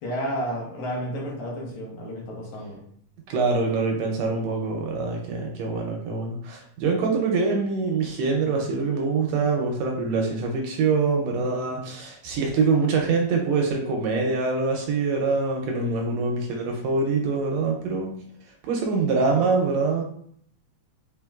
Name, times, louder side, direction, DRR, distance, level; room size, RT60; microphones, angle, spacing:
voice 1, 0.0-2.8 15.7-16.0, equal, 75° left, -2 dB, 2.3 m, -31 dB
voice 2, 3.3-18.1 18.6-20.0, right 4 dB, 75° right, 1 dB, 1.7 m, -24 dB
5.0 x 3.2 x 2.3 m, 0.62 s
omnidirectional pair, 3.3 m